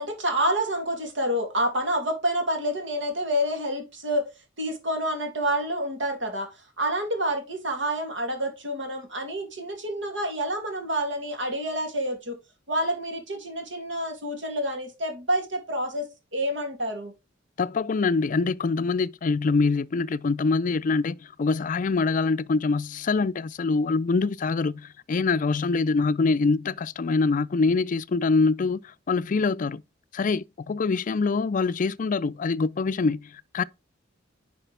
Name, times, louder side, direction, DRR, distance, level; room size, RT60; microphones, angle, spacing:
voice 1, 0.0-4.3 4.6-12.4 12.7-17.1, right 1 dB, 75° right, 2.6 m, -28 dB
voice 2, 17.6-29.8 30.1-33.6, left 4 dB, 45° left, 0.4 m, -24 dB
10.0 x 5.0 x 3.3 m
head